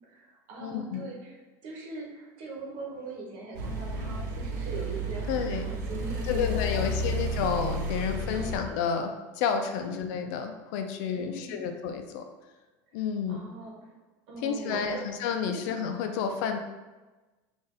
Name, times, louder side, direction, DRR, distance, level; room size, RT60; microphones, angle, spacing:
voice 1, 0.1-7.1 8.3-8.6 9.8-9.9 11.1-11.6 13.3-13.7 14.3-15.0 15.4-15.6, right 2 dB, 60° right, -2 dB, 1.2 m, -41 dB
voice 2, 0.6-1.0 5.3-5.7 6.3-12.2 12.9-13.5 14.4-16.6, left 6 dB, 75° left, 5 dB, 0.5 m, -30 dB
sound 1, 3.5-8.6, equal, 80° right, 0.8 m, -32 dB
4.0 x 2.6 x 3.9 m, 1.2 s
supercardioid pair, 130°, 10 cm